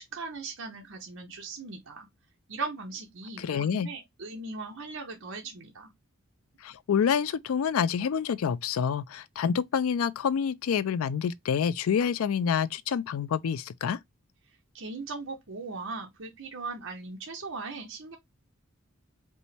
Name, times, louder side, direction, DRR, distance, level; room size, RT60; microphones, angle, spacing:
voice 1, 0.0-2.1 2.5-5.9 14.7-18.2, right 3 dB, 65° right, 0.9 m, -39 dB
voice 2, 3.4-3.9 6.6-14.0, left 7 dB, 80° left, 0.4 m, -27 dB
5.2 x 2.1 x 3.2 m
head